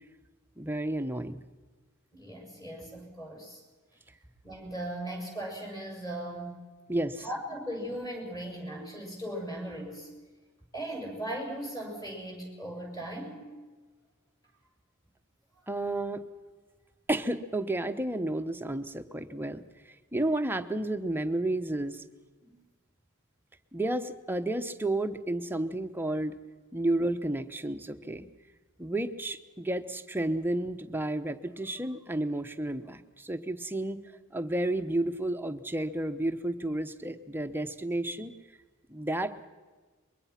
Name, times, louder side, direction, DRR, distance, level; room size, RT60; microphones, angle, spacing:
voice 1, 0.6-1.4 6.9-7.3 15.7-16.2 17.1-19.6 20.1-22.0 23.7-26.3 26.7-28.3 28.8-34.0 34.3-38.3 38.9-39.3, right 1 dB, 10° right, 7 dB, 1.0 m, -31 dB
voice 2, 2.1-3.6 4.4-6.6 7.2-10.1 10.7-13.5 22.4-22.6, right 1 dB, 15° left, 0 dB, 7.0 m, -38 dB
23.5 x 22.5 x 5.9 m, 1.3 s
head